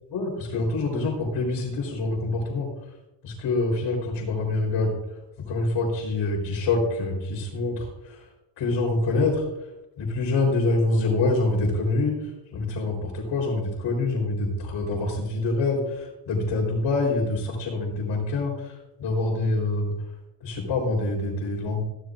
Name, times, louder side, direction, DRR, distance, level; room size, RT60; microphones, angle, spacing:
voice 1, 0.1-2.7 3.2-4.9 5.4-8.2 8.6-9.4 10.0-12.2 12.5-18.7 19.0-20.0 20.4-21.8, left 2 dB, 65° left, -6 dB, 4.0 m, -25 dB
16.5 x 13.0 x 2.5 m, 0.97 s
cardioid pair, 155°, 46 cm